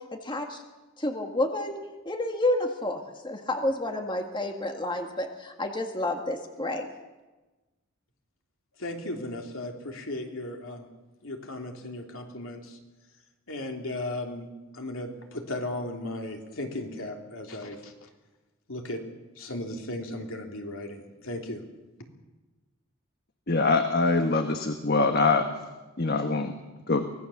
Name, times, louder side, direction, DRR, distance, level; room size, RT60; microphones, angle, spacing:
voice 1, 0.1-0.6 1.0-1.8 2.1-6.9, left 1 dB, 20° left, 4 dB, 1.7 m, -30 dB
voice 2, 8.8-10.8 11.2-12.8 13.5-14.5 14.7-17.9 18.7-19.0 19.4-21.6, left 1 dB, 70° left, 2 dB, 3.2 m, -36 dB
voice 3, 23.5-25.5 26.0-26.5 26.9-27.1, left 3 dB, 50° left, 6 dB, 1.3 m, -23 dB
24.5 x 18.5 x 7.2 m, 1.2 s
head